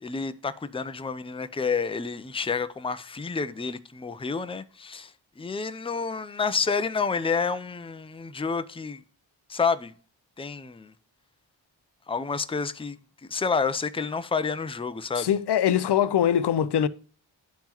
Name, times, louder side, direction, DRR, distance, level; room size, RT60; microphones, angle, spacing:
voice 1, 0.0-5.1 5.4-9.0 9.5-9.9 10.4-10.9 12.1-13.0 13.3-15.3, left 5 dB, 10° left, 0.5 m, -29 dB
voice 2, 15.1-16.9, left 9 dB, 55° left, 0.6 m, -22 dB
10.5 x 3.6 x 2.9 m
cardioid pair, 40°, 48 cm